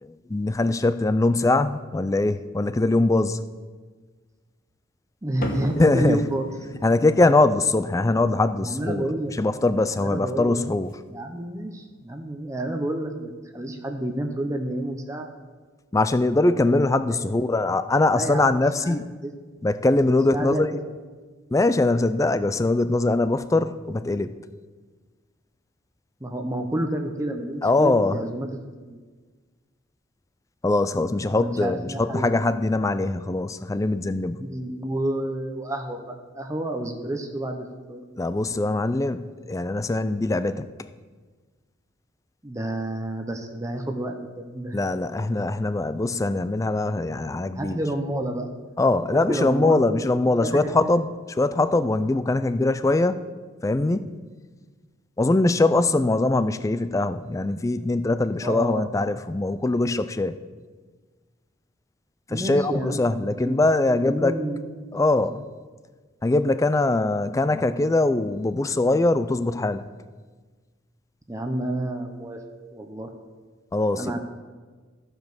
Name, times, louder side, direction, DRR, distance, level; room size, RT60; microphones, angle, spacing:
voice 1, 0.0-3.4 5.8-6.2 6.8-9.0 9.4-10.9 15.9-19.1 19.6-20.7 21.5-24.3 27.6-28.2 30.6-34.4 38.2-40.7 44.7-47.8 48.8-53.2 53.6-54.1 55.2-60.4 62.3-64.3 64.9-65.4 66.2-69.8 73.7-74.2, left 2 dB, 15° left, 13 dB, 0.3 m, -22 dB
voice 2, 5.2-6.5 8.6-9.3 9.9-10.6 11.1-15.3 17.0-17.3 18.1-19.3 20.3-20.8 26.2-28.5 28.8-29.0 31.3-32.3 34.4-38.0 42.4-44.8 47.5-48.5 49.3-50.7 58.4-59.1 62.3-63.6 63.9-65.2 71.3-72.4 72.7-73.1 74.0-74.2, right 1 dB, 15° right, 4 dB, 0.7 m, -30 dB
sound 1, 5.4-12.1, equal, 45° left, 1.2 m, -40 dB
14.5 x 5.3 x 6.1 m, 1.4 s
head